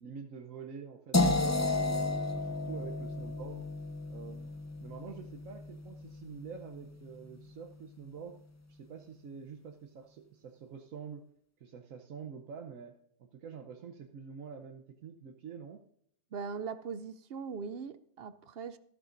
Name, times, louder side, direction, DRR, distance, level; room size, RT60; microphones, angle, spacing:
voice 1, 0.0-3.6 4.1-4.5 4.8-8.4 8.7-11.2 11.6-15.8, right 6 dB, 80° right, 1.2 m, -47 dB
sound 1, 1.1-7.0, left 2 dB, 25° left, 0.4 m, -33 dB
voice 2, 16.3-18.8, right 5 dB, 60° right, 0.7 m, -40 dB
14.0 x 12.0 x 2.6 m
omnidirectional pair, 1.4 m